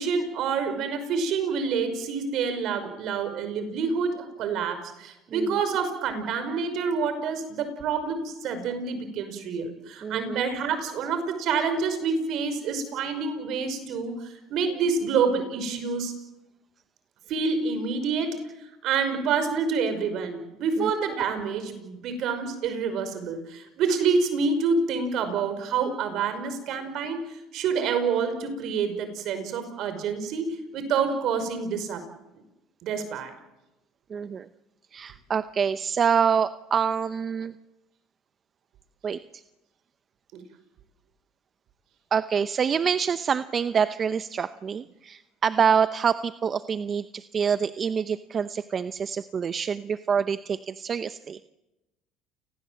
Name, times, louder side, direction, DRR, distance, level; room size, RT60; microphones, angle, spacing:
voice 1, 0.0-16.1 17.3-18.4 18.8-32.0 32.8-33.3 40.3-40.4, right 5 dB, 60° right, 9 dB, 5.5 m, -27 dB
voice 2, 5.3-5.6 10.0-10.5 20.8-20.9 34.1-34.5 34.9-37.5 39.0-39.4 42.1-51.4, right 7 dB, 35° right, 12 dB, 0.8 m, -26 dB
29.5 x 19.5 x 7.8 m, 1.0 s
supercardioid pair, 95°, 0 cm